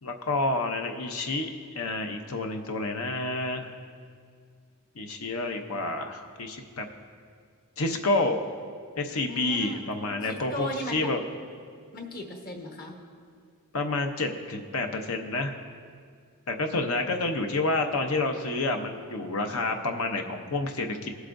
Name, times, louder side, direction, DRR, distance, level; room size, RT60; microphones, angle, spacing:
voice 1, 0.0-1.5 1.7-3.7 5.0-6.9 7.8-8.4 9.0-11.2 13.7-15.5 16.5-21.1, left 2 dB, 65° left, 5 dB, 0.8 m, -29 dB
voice 2, 9.3-9.9 10.2-11.1 11.9-13.0, equal, 40° left, 1 dB, 1.3 m, -36 dB
20.5 x 8.1 x 2.6 m, 2.2 s
head